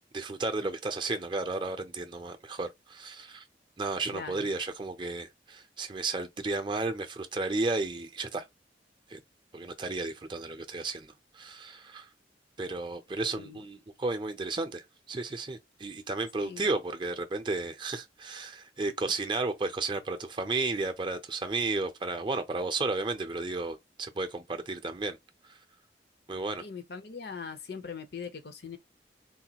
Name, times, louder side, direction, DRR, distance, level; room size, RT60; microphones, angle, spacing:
voice 1, 0.1-3.4 3.8-8.5 9.1-9.2 9.5-12.1 12.6-25.2 25.4-25.6 26.3-26.6, right 3 dB, 25° right, 0.5 m, -33 dB
voice 2, 4.1-4.5 13.2-13.6 16.4-16.7 26.6-28.8, left 5 dB, 65° left, 0.6 m, -41 dB
3.8 x 2.2 x 2.9 m
head